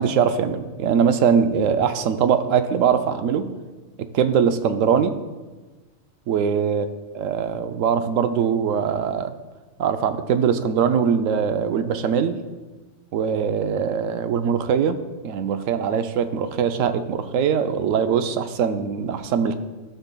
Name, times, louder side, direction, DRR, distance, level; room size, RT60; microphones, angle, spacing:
voice 1, 0.0-3.5 4.1-5.2 6.3-6.9 7.1-9.3 9.8-12.4 13.1-15.0 15.2-19.6, right 7 dB, 80° right, 9 dB, 1.0 m, -21 dB
13.0 x 6.6 x 2.3 m, 1.3 s
omnidirectional pair, 1.3 m